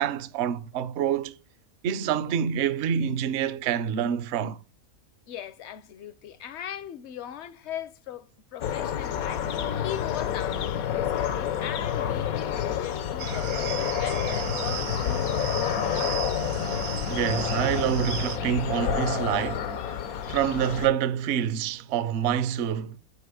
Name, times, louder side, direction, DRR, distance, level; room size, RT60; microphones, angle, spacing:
voice 1, 0.0-1.4 1.8-4.6 17.1-20.0 20.3-23.0, right 9 dB, 60° right, 0.8 m, -27 dB
voice 2, 5.3-9.5 9.8-16.3, left 10 dB, 65° left, 0.7 m, -39 dB
sound 1, 8.6-20.9, left 9 dB, 85° left, 1.2 m, -29 dB
sound 2, 13.2-18.4, right 10 dB, 90° right, 1.1 m, -36 dB
6.9 x 4.7 x 4.9 m
omnidirectional pair, 1.5 m